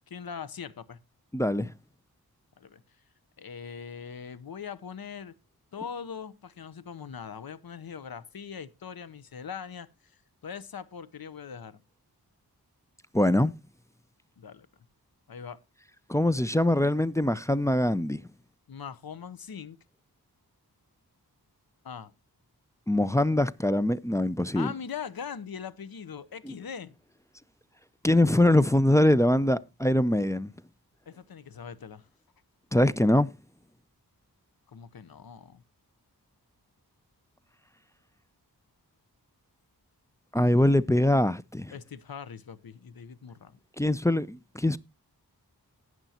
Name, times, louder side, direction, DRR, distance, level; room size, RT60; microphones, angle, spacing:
voice 1, 0.1-1.0 2.6-2.8 3.4-5.4 5.7-9.9 10.4-11.8 14.4-14.7 15.3-15.6 18.7-19.8 21.8-22.1 24.5-26.9 31.1-32.1 34.7-35.6 41.7-43.6, left 7 dB, 65° left, 0.8 m, -41 dB
voice 2, 1.3-1.7 13.1-13.5 16.1-18.2 22.9-24.7 26.5-26.6 28.0-30.5 32.7-33.3 40.3-41.7 43.8-44.8, left 1 dB, 10° left, 0.4 m, -23 dB
18.0 x 6.2 x 2.8 m
wide cardioid pair, 55°, 39 cm